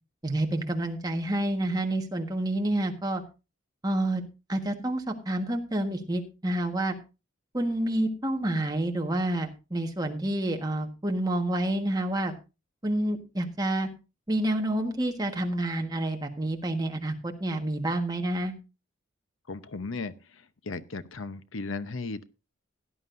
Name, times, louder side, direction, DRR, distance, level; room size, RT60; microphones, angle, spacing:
voice 1, 0.2-3.2 3.8-4.2 4.5-6.9 7.5-12.3 12.8-13.9 14.3-18.5, right 1 dB, 20° right, 3 dB, 1.5 m, -28 dB
voice 2, 19.5-22.2, left 3 dB, 80° left, 13 dB, 0.8 m, -36 dB
16.5 x 11.0 x 2.6 m, 0.29 s
head